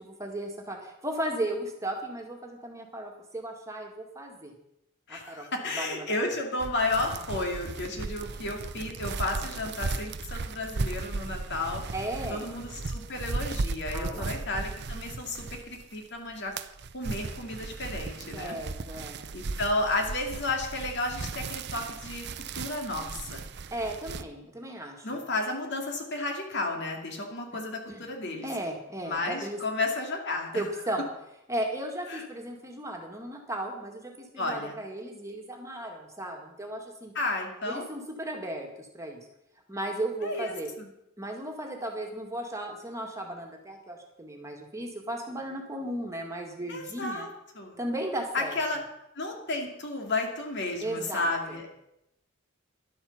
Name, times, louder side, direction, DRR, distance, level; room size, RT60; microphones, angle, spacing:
voice 1, 0.0-4.5 5.1-5.5 5.7-6.2 11.9-12.5 13.9-14.3 18.3-19.2 23.7-25.2 27.9-28.1 28.4-29.6 30.5-31.1 31.5-37.1 37.6-39.3 39.7-40.7 41.2-47.3 47.8-48.6 50.8-51.7, right 1 dB, 15° right, 1 dB, 1.9 m, -35 dB
voice 2, 5.1-11.8 12.3-16.5 16.9-18.6 19.3-23.4 25.0-28.5 29.0-30.5 32.1-32.3 34.4-34.8 37.1-37.9 40.2-40.9 46.7-47.3 47.6-47.8 48.3-48.8 49.1-51.7, left 2 dB, 60° left, 2 dB, 2.3 m, -32 dB
sound 1, 6.6-16.0 16.3-24.2, right 3 dB, 55° right, 0.6 m, -36 dB
11.5 x 8.8 x 7.1 m, 0.83 s
head